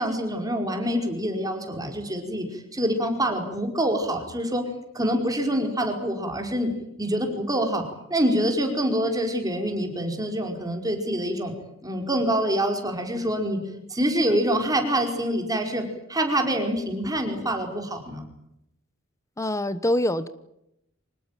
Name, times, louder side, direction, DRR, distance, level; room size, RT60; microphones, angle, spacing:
voice 1, 0.0-6.7 7.0-7.8 8.1-11.5 11.8-13.6 13.9-18.2, right 1 dB, 20° right, 4 dB, 5.0 m, -26 dB
voice 2, 19.4-20.3, left 1 dB, 15° left, 14 dB, 1.0 m, -24 dB
25.5 x 20.0 x 9.1 m, 0.81 s
head